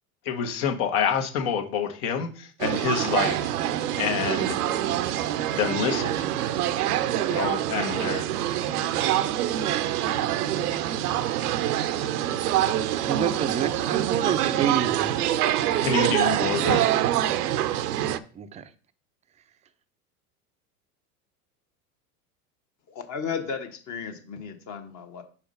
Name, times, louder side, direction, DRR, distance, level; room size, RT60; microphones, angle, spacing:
voice 1, 0.2-3.5 4.0-4.5 5.5-6.3 7.3-8.3 15.8-16.8, left 7 dB, 65° left, 1.3 m, -27 dB
sound 1, 2.6-18.2, right 12 dB, 80° right, 0.6 m, -25 dB
voice 2, 13.0-15.3 18.3-18.7, right 8 dB, 15° right, 0.4 m, -28 dB
voice 3, 22.9-25.2, left 6 dB, 40° left, 1.2 m, -34 dB
4.8 x 4.3 x 5.2 m
hypercardioid pair, 95°, 45 cm